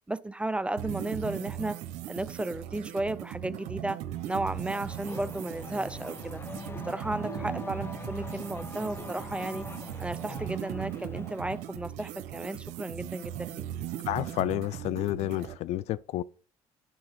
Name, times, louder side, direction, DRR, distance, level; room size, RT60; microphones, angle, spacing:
voice 1, 0.1-1.8 2.1-6.4 6.9-9.7 10.0-13.7, right 2 dB, 10° right, 0.4 m, -34 dB
sound 1, 0.8-15.6, right 12 dB, 85° right, 0.9 m, -38 dB
Race car auto racing / Accelerating revving vroom, 4.6-11.8, left 4 dB, 20° left, 0.8 m, -44 dB
voice 2, 14.1-16.2, left 15 dB, 65° left, 0.4 m, -30 dB
10.0 x 4.1 x 6.5 m
cardioid pair, 100°, 12 cm